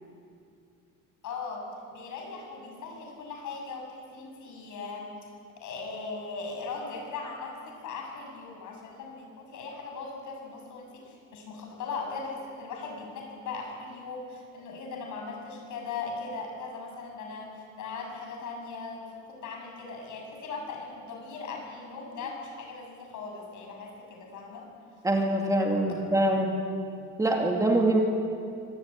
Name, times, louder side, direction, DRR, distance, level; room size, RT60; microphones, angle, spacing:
voice 1, 1.2-1.6 1.9-5.1 5.6-24.7, left 4 dB, 65° left, 1 dB, 7.5 m, -39 dB
voice 2, 25.0-26.5 27.2-28.0, right 1 dB, 10° right, 0 dB, 2.5 m, -24 dB
25.0 x 20.5 x 8.9 m, 2.4 s
cardioid pair, 160°, 32 cm